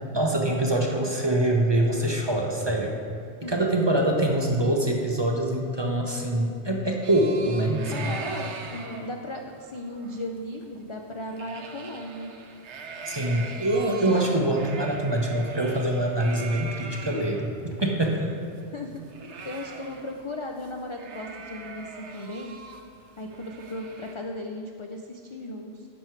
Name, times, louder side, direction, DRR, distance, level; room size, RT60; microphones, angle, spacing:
voice 1, 0.1-2.9 3.5-8.1 13.0-18.3, right 1 dB, 30° right, 1 dB, 0.6 m, -24 dB
sound 1, 7.0-17.5 17.8-17.9 18.1-20.3 20.6-20.7 21.0-24.1, right 5 dB, 75° right, 1.0 m, -41 dB
voice 2, 7.9-12.3 16.4-16.5 17.1-17.4 18.1-18.3 18.7-22.6 23.2-25.9, left 1 dB, 45° left, 2 dB, 0.4 m, -36 dB
10.5 x 6.2 x 4.5 m, 2.4 s
omnidirectional pair, 1.2 m